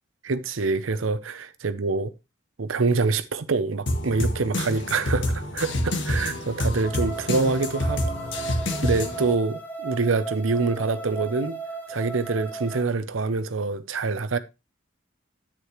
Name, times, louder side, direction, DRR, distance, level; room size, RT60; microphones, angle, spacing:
voice 1, 0.2-2.1 2.6-8.0 8.8-11.6 11.9-14.4, right 3 dB, 80° right, 0.7 m, -25 dB
sound 1, 3.9-9.3, left 1 dB, 65° left, 1.6 m, -28 dB
sound 2, 6.8-12.8, right 4 dB, 10° left, 1.1 m, -35 dB
9.8 x 8.4 x 3.1 m
head